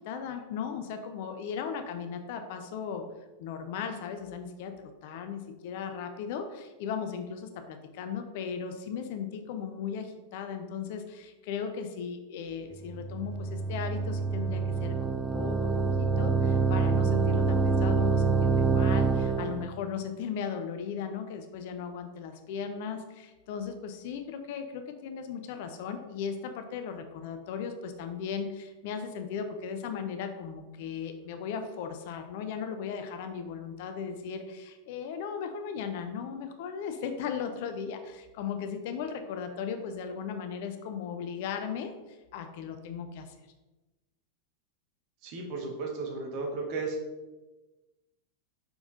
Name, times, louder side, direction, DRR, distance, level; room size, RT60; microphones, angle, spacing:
voice 1, 0.0-3.1 3.4-41.9 42.3-43.3, left 6 dB, 50° left, 7 dB, 0.5 m, -37 dB
sound 1, 12.9-19.7, right 4 dB, 15° right, 0.3 m, -26 dB
voice 2, 45.2-47.0, right 3 dB, 45° right, 0 dB, 1.1 m, -34 dB
5.4 x 4.6 x 3.9 m, 1.1 s
figure-of-eight pair, 90°, 0 cm